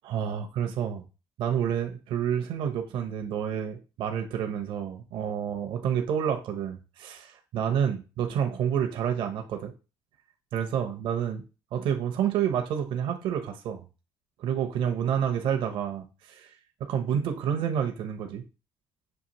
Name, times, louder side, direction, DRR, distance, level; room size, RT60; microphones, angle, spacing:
voice 1, 0.0-1.0 1.4-9.7 10.5-11.4 11.7-13.8 14.4-16.5 16.8-18.4, right 8 dB, 70° right, 4 dB, 0.7 m, -29 dB
6.4 x 2.5 x 2.9 m, 0.31 s
cardioid pair, 110°, 9 cm